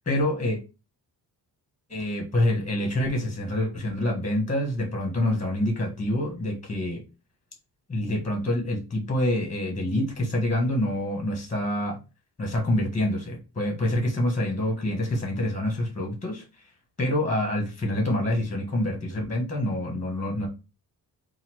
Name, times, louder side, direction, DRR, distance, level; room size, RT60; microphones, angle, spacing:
voice 1, 0.0-0.6 1.9-7.0 7.9-12.0 12.4-16.4 17.0-20.5, left 1 dB, 20° left, 2 dB, 1.4 m, -26 dB
4.1 x 2.4 x 4.4 m, 0.28 s
wide cardioid pair, 150°, 39 cm